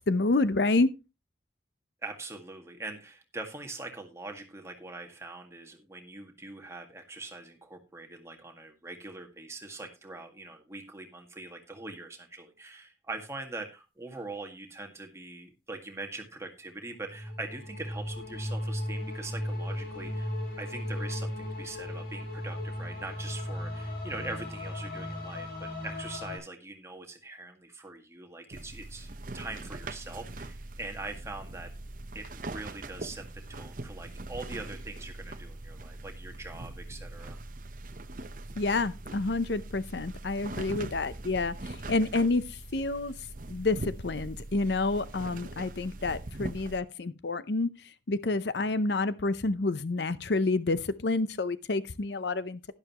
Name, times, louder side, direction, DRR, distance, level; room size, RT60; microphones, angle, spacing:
voice 1, 0.1-0.9 38.6-43.1 43.5-47.7 48.1-52.7, left 3 dB, 70° left, 0.7 m, -28 dB
voice 2, 2.0-20.3 20.6-31.7 32.1-37.4, right 2 dB, 15° right, 1.8 m, -42 dB
sound 1, 17.0-26.4, left 1 dB, 55° left, 5.6 m, -36 dB
sound 2, 28.5-46.8, right 2 dB, 50° right, 0.9 m, -42 dB
11.5 x 11.5 x 3.0 m
head